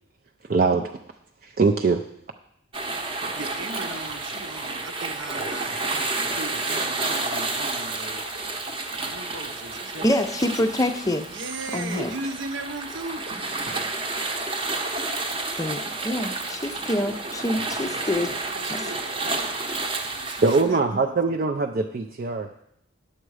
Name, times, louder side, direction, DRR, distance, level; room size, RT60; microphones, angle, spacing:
voice 1, 0.5-1.0 1.4-2.0 20.4-22.5, right 4 dB, 45° right, 3 dB, 0.4 m, -22 dB
sound 1, 2.7-20.6, right 3 dB, 25° right, 0.9 m, -30 dB
voice 2, 3.3-5.7 6.3-8.2 9.0-10.1 11.3-13.2 18.4-19.6 20.1-21.4, right 2 dB, 70° right, 8 dB, 0.8 m, -37 dB
voice 3, 10.0-11.3 11.7-12.1 15.6-18.3 18.7-18.9, left 1 dB, 15° left, 7 dB, 0.5 m, -26 dB
10.0 x 7.5 x 4.8 m, 0.77 s
head